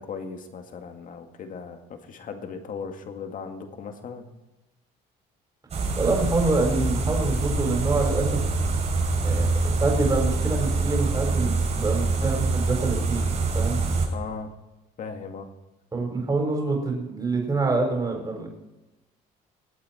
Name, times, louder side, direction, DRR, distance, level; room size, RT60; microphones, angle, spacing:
voice 1, 0.0-4.3 14.1-14.5 15.0-15.5, left 5 dB, 50° left, 5 dB, 2.2 m, -37 dB
sound 1, 5.7-14.1, right 3 dB, 40° right, 6.4 m, -25 dB
voice 2, 6.0-8.7 9.2-13.2 13.5-13.8 15.9-18.5, right 3 dB, 20° right, 1 dB, 4.9 m, -26 dB
21.5 x 8.7 x 4.5 m, 1.0 s
cardioid pair, 110°, 17 cm